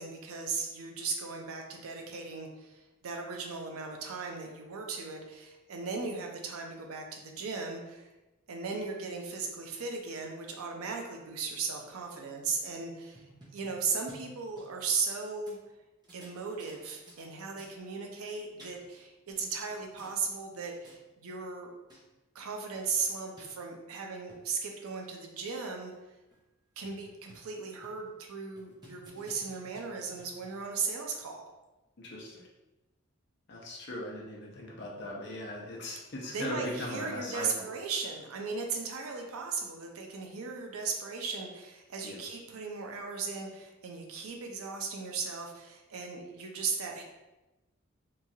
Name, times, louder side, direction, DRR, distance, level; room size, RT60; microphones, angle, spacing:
voice 1, 0.0-8.1 8.5-13.2 13.5-15.6 16.1-21.7 22.3-25.9 26.8-31.5 36.3-47.0, right 5 dB, 90° right, 2 dB, 0.5 m, -37 dB
sound 1, 13.1-15.2 15.5-15.6 16.0-17.3 17.6-17.7 18.3-19.0 19.3-20.3 20.6-21.0 21.6-21.7 21.9-22.0 22.4-22.5 22.7-22.8 23.4-23.5 24.1-24.4 24.9-25.0 25.3-25.4 25.9-26.0 26.3-26.4 26.8-27.5 27.8-28.1 28.6-30.7, right 2 dB, 20° right, 0.6 m, -55 dB
voice 2, 32.0-32.5 33.5-37.6 42.0-42.2, left 1 dB, 55° left, -2 dB, 0.6 m, -39 dB
3.0 x 2.3 x 2.7 m, 1.0 s
head